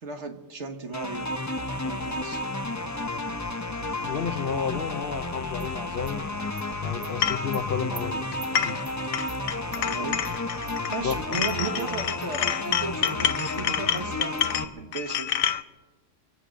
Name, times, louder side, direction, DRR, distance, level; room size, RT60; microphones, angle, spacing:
voice 1, 0.0-1.3 1.8-2.4 9.7-10.2 10.9-15.4, right 4 dB, 60° right, 5 dB, 1.6 m, -35 dB
sound 1, 0.9-14.6, left 2 dB, 20° left, 0.5 m, -32 dB
voice 2, 4.0-6.2 6.8-8.2 8.5-8.8 11.0-11.4, left 7 dB, 55° left, 7 dB, 0.7 m, -32 dB
Animal, 5.6-5.7 6.1-6.2 6.6-6.7 7.0-7.1 7.5-7.6 8.0-8.1 8.4-8.5 8.9-9.0 9.3-9.4 9.7-9.8 10.2-10.4 10.7-10.8 11.1-11.2 11.5-11.9 12.2-12.3 12.6-12.7 13.1-13.2 13.5-13.6 14.0-14.1 14.4-14.5, right 6 dB, 45° right, 0.7 m, -44 dB
sound 2, 7.2-7.5 8.3-8.9 9.1-11.0 11.3-15.6, left 9 dB, 80° left, 1.1 m, -28 dB
25.0 x 8.4 x 6.3 m, 1.2 s
omnidirectional pair, 1.4 m